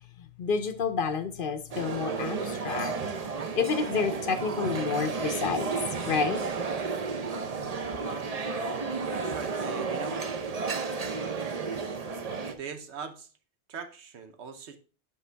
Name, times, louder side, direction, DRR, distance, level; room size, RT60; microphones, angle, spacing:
voice 1, 0.4-2.9 3.6-5.8 6.1-6.5, left 5 dB, 55° left, 0.8 m, -29 dB
sound 1, 1.7-12.5, right 4 dB, 40° right, 0.7 m, -32 dB
voice 2, 9.1-10.3 12.5-13.3 13.7-14.8, right 6 dB, 75° right, 1.1 m, -41 dB
7.6 x 5.7 x 3.3 m
omnidirectional pair, 1.2 m